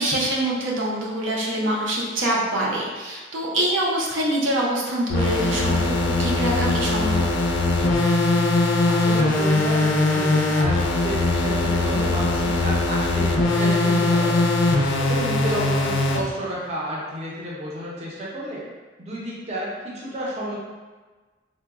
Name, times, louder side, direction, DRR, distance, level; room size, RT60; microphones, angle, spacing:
voice 1, 0.0-7.2, right 1 dB, 80° right, -3 dB, 0.5 m, -25 dB
sound 1, 5.1-16.2, left 2 dB, 70° left, 0.4 m, -21 dB
voice 2, 8.9-14.4 15.0-18.6 19.0-20.6, right 1 dB, 35° right, -6 dB, 0.5 m, -31 dB
3.8 x 2.1 x 2.3 m, 1.3 s
head